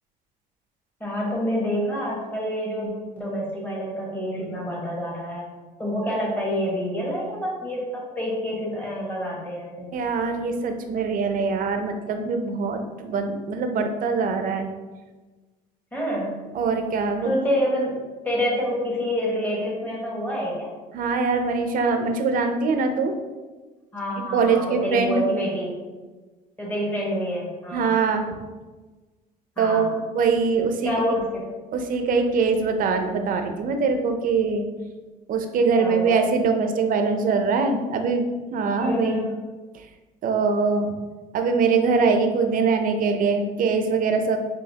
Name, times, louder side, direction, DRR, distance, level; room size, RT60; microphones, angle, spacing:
voice 1, 1.0-5.5 5.8-10.0 15.9-16.5 17.2-18.0 18.2-20.7 23.9-25.7 26.6-28.0 29.6-29.9 30.8-31.5 35.8-36.2 38.8-39.3, equal, 10° left, -5 dB, 1.4 m, -27 dB
voice 2, 9.9-14.7 16.5-17.3 20.9-23.1 24.3-25.2 27.7-28.3 29.6-30.9 31.7-34.7 35.3-39.2 39.7-39.8 40.2-40.9 41.3-44.4, right 4 dB, 55° right, 6 dB, 0.5 m, -23 dB
4.9 x 2.7 x 2.8 m, 1.3 s
cardioid pair, 110°, 17 cm